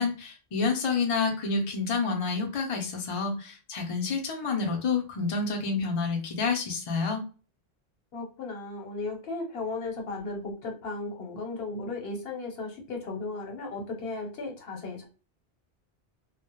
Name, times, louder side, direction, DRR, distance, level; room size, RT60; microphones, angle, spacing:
voice 1, 0.0-7.2, left 4 dB, 45° left, 2 dB, 0.5 m, -28 dB
voice 2, 8.1-15.1, left 3 dB, 70° left, 2 dB, 0.9 m, -35 dB
2.1 x 2.0 x 2.9 m, 0.36 s
omnidirectional pair, 1.1 m